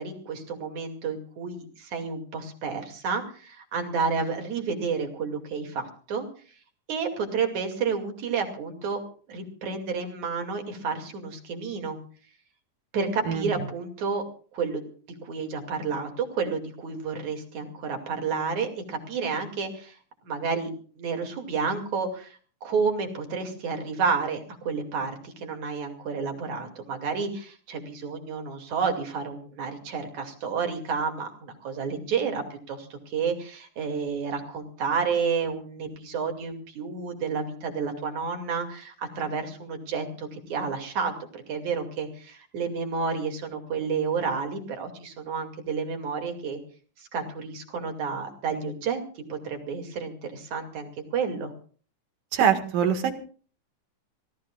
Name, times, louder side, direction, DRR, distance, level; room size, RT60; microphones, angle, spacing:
voice 1, 0.0-6.3 6.9-9.0 9.3-12.0 12.9-14.2 14.5-14.8 15.2-20.0 20.2-46.6 47.0-49.0 49.3-51.5, right 5 dB, 60° right, 4 dB, 3.8 m, -30 dB
voice 2, 13.3-13.6 52.3-53.1, right 8 dB, 80° right, 6 dB, 3.4 m, -23 dB
26.5 x 17.0 x 2.4 m, 0.41 s
omnidirectional pair, 3.8 m